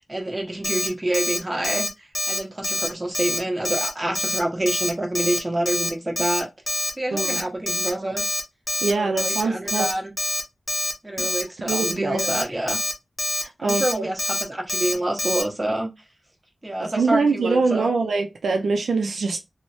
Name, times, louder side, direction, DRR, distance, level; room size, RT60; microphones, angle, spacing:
voice 1, 0.1-1.9 2.3-6.5 7.0-8.4 8.9-10.1 11.0-12.8 13.6-14.2 14.5-15.9 16.6-17.9, right 1 dB, 25° right, 1.0 m, -27 dB
Alarm, 0.6-0.9 1.1-1.4 1.6-1.9 2.1-2.4 2.6-2.9 3.1-3.4 3.6-3.9 4.1-4.4 4.7-4.9 5.1-5.4 5.6-5.9 6.2-6.4 6.7-6.9 7.2-7.4 7.7-7.9 8.2-8.4 8.7-8.9 9.2-9.4 9.7-9.9 10.2-10.4 10.7-10.9 11.2-11.4 11.7-11.9 12.2-12.4 12.7-12.9 13.2-13.4 13.7-13.9 14.2-14.4 14.7-14.9 15.2-15.4, left 1 dB, 25° left, 0.8 m, -25 dB
voice 2, 7.1-7.4 8.8-9.9 11.2-11.3 11.7-12.4 13.3-14.1 16.8-19.4, right 4 dB, 90° right, 0.4 m, -24 dB
3.1 x 2.0 x 2.6 m
cardioid pair, 55°, 0 cm